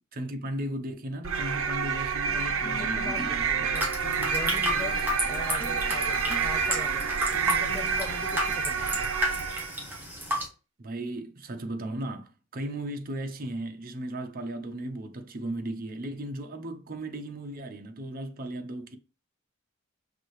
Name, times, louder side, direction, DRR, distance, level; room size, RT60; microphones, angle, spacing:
voice 1, 0.1-3.8 10.8-19.0, right 1 dB, 45° right, 0.7 m, -36 dB
sound 1, 1.2-9.8, right 6 dB, 80° right, 0.7 m, -28 dB
sound 2, 2.4-8.0, equal, 45° left, 0.9 m, -43 dB
voice 2, 2.8-3.9 4.2-7.0 7.4-9.1, left 3 dB, 20° left, 0.5 m, -41 dB
sound 3, 3.7-10.5, left 1 dB, 10° right, 1.1 m, -33 dB
6.0 x 2.7 x 3.1 m
head